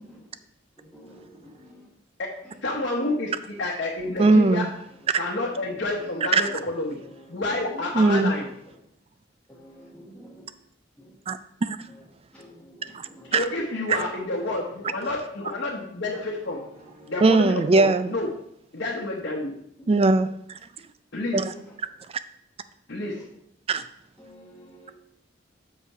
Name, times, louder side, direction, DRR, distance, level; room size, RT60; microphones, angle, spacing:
voice 1, 0.9-1.2 9.8-10.4 12.3-12.5 13.2-13.3 17.0-17.1 24.3-24.9, equal, 5° left, 1.3 m, -48 dB
voice 2, 2.6-4.7 5.2-7.0 7.3-8.5 13.3-16.6 17.1-18.3 18.7-19.6 21.1-21.4 22.9-23.2, left 2 dB, 65° left, 1.1 m, -29 dB
voice 3, 4.2-4.7 6.3-6.5 7.9-8.3 11.3-11.8 12.9-13.4 17.2-18.1 19.9-20.4 21.3-21.5 23.7-23.8, right 3 dB, 30° right, 0.4 m, -20 dB
6.7 x 5.3 x 4.9 m
head